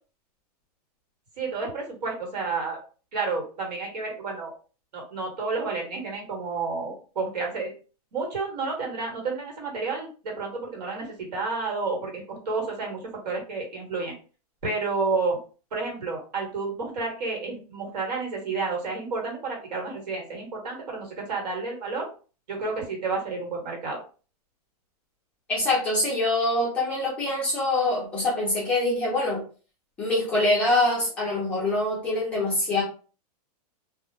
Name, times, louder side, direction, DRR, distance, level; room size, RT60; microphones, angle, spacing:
voice 1, 1.4-2.8 3.1-4.5 4.9-7.7 8.1-14.2 14.6-15.4 15.7-22.1 22.5-24.0, right 4 dB, 85° right, 0 dB, 1.4 m, -30 dB
voice 2, 25.5-29.4 30.0-32.8, left 2 dB, 5° left, -6 dB, 0.4 m, -24 dB
2.3 x 2.0 x 3.2 m, 0.37 s
supercardioid pair, 180°, 20 cm